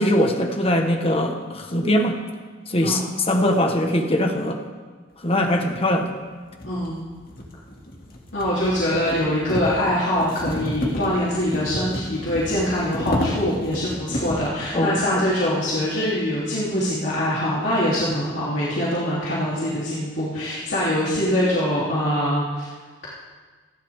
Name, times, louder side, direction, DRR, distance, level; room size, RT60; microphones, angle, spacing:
voice 1, 0.0-2.2 2.7-3.0 3.3-4.6 5.2-6.1 14.7-15.2, left 1 dB, 30° left, 3 dB, 1.4 m, -21 dB
sound 1, 5.7-5.8 6.5-14.6, left 1 dB, 50° left, 2.4 m, -31 dB
voice 2, 6.6-7.0 8.3-22.7, left 1 dB, 70° left, -9 dB, 3.4 m, -23 dB
28.0 x 11.5 x 3.7 m, 1.4 s
head